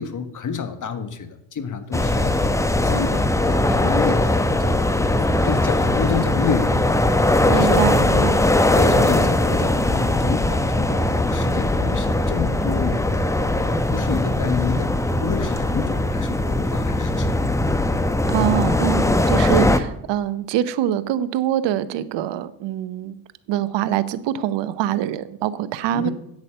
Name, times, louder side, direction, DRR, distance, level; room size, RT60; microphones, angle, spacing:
voice 1, 0.0-7.8 8.1-8.3 8.7-13.3 13.6-17.4 25.9-26.1, left 6 dB, 40° left, 9 dB, 1.4 m, -29 dB
sound 1, 1.8-5.7, left 1 dB, 90° left, 5.0 m, -40 dB
sound 2, 1.9-19.8, left 1 dB, 5° left, 0.8 m, -20 dB
voice 2, 7.5-8.4 18.3-23.2 23.5-26.1, right 11 dB, 60° right, 15 dB, 0.9 m, -24 dB
8.2 x 8.1 x 6.7 m, 0.81 s
hypercardioid pair, 60°, 48 cm